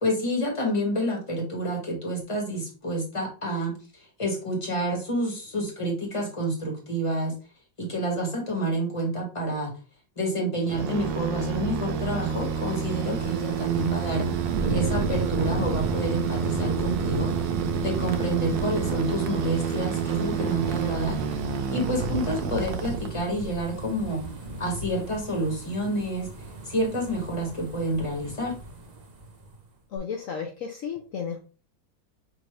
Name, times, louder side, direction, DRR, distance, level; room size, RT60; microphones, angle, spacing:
voice 1, 0.0-3.7 4.2-7.3 7.8-9.7 10.2-14.3 14.7-17.3 17.8-21.2 21.7-24.2 24.6-26.3 26.6-28.6, right 1 dB, 20° left, 0 dB, 1.2 m, -28 dB
sound 1, 10.7-23.5, right 7 dB, 75° right, 1.2 m, -29 dB
sound 2, 11.5-29.5 30.0-30.1, right 3 dB, 50° right, 1.3 m, -34 dB
voice 2, 29.9-31.4, left 6 dB, 70° left, 1 dB, 0.7 m, -33 dB
6.1 x 2.7 x 3.2 m, 0.36 s
omnidirectional pair, 2.1 m